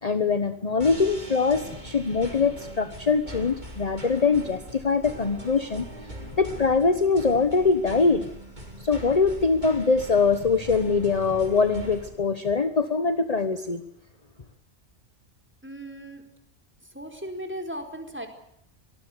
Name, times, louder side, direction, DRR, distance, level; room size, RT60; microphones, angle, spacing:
voice 1, 0.0-5.9 6.4-8.3 8.8-13.8, left 4 dB, 35° left, 10 dB, 1.2 m, -23 dB
sound 1, 0.8-12.1, equal, 40° right, 5.4 m, -41 dB
voice 2, 15.6-16.3 16.9-18.3, equal, 10° right, 6 dB, 4.4 m, -36 dB
25.0 x 20.0 x 8.0 m, 0.72 s
omnidirectional pair, 1.2 m